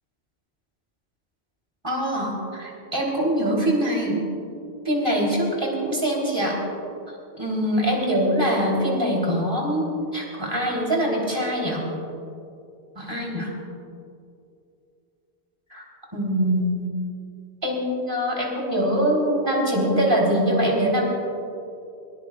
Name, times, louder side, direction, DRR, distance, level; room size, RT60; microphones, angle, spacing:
voice 1, 1.8-4.2 4.9-6.6 7.4-9.8 10.1-11.9 13.0-13.5 15.7-15.8 16.1-16.9 17.6-21.0, equal, 20° right, -3 dB, 3.6 m, -23 dB
22.0 x 20.0 x 2.4 m, 2.6 s
omnidirectional pair, 1.1 m